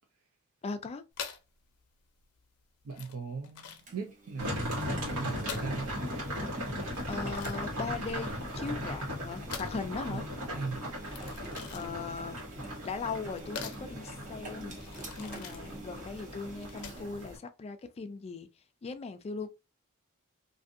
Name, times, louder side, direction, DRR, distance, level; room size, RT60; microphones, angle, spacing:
voice 1, 0.6-1.0 7.1-8.3 8.6-10.3 11.7-12.4 12.8-18.5 18.8-19.5, left 4 dB, 30° left, 0.3 m, -39 dB
sound 1, 1.1-17.2, left 7 dB, 80° left, 0.5 m, -46 dB
voice 2, 2.8-6.0 10.1-10.2 10.5-10.8, right 4 dB, 70° right, 0.5 m, -39 dB
Engine, 3.9-17.3, right 2 dB, 35° right, 0.7 m, -48 dB
sound 2, 4.4-17.4, equal, 90° right, 1.4 m, -38 dB
2.6 x 2.5 x 2.6 m
head